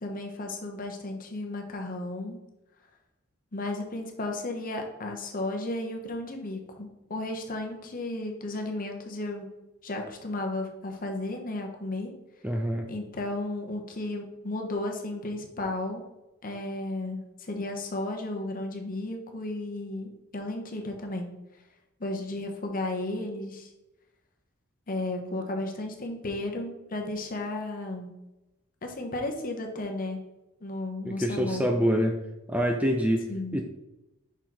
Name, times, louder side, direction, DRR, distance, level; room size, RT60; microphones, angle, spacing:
voice 1, 0.0-2.4 3.5-9.5 9.8-12.1 12.9-16.0 16.4-21.3 22.0-23.7 24.9-28.1 28.8-30.2 30.6-31.6 33.3-33.6, left 2 dB, 40° left, 3 dB, 1.0 m, -34 dB
voice 2, 12.4-12.9 31.1-32.2 32.5-33.6, equal, 5° right, 3 dB, 0.4 m, -26 dB
5.7 x 4.4 x 4.7 m, 0.96 s
head